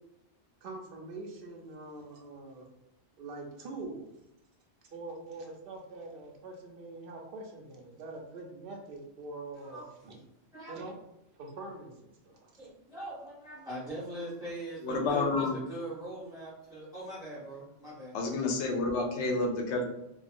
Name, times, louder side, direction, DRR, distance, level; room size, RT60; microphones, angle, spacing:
voice 1, 0.6-2.6 3.2-4.1 4.9-9.8 10.0-10.2 10.7-11.0 11.4-11.9 12.2-12.5 15.3-15.4, right 2 dB, 60° right, 1 dB, 0.7 m, -44 dB
voice 2, 9.5-9.9 10.5-10.9 12.6-18.2, right 1 dB, 5° right, -11 dB, 0.8 m, -41 dB
voice 3, 14.8-15.6 18.1-19.8, left 3 dB, 80° left, 1 dB, 0.9 m, -29 dB
2.7 x 2.3 x 2.4 m, 0.83 s
omnidirectional pair, 1.2 m